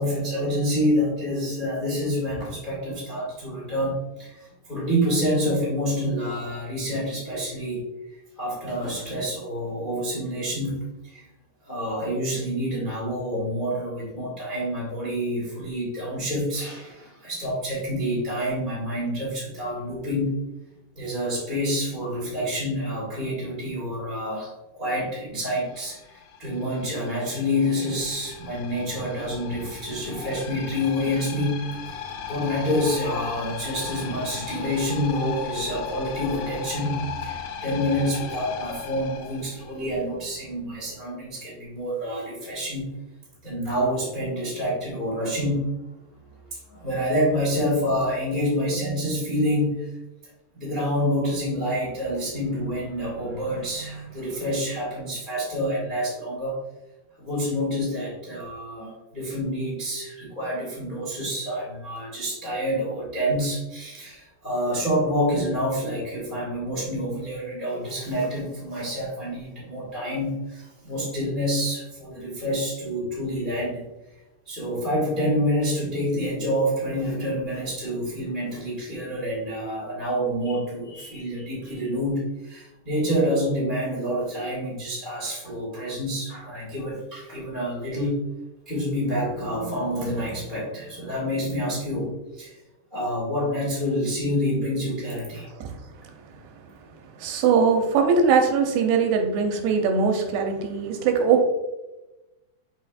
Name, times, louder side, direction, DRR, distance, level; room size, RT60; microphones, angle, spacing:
voice 1, 0.0-11.3 11.6-20.5 20.9-32.0 32.3-43.0 43.4-45.8 46.7-49.9 50.5-56.6 57.2-73.8 74.4-88.2 88.6-92.6 92.9-95.5, equal, 30° left, -7 dB, 0.9 m, -27 dB
sound 1, 25.6-40.2, left 7 dB, 80° left, 2.0 m, -37 dB
voice 2, 97.2-101.4, right 5 dB, 85° right, 4 dB, 2.7 m, -21 dB
6.9 x 5.6 x 2.4 m, 1.0 s
omnidirectional pair, 4.8 m